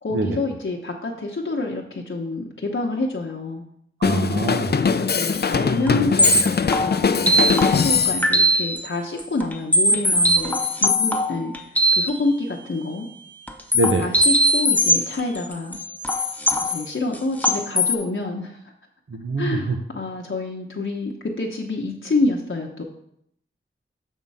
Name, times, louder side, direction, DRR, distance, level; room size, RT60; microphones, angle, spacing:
voice 1, 0.0-3.6 4.8-11.5 12.0-13.1 14.0-15.8 16.6-18.6 19.4-22.8, left 2 dB, 70° left, -1 dB, 0.9 m, -27 dB
Drum kit, 4.0-8.2, left 5 dB, 50° left, 0.4 m, -22 dB
voice 2, 4.0-4.7 13.7-14.1 19.1-19.7, right 2 dB, 75° right, 3 dB, 0.8 m, -23 dB
sound 1, 5.3-5.4 5.9-6.0 6.2-8.9 9.2-12.1 13.5-18.0, equal, 5° left, 0.7 m, -20 dB
7.3 x 3.7 x 5.5 m, 0.71 s
wide cardioid pair, 45°, 21 cm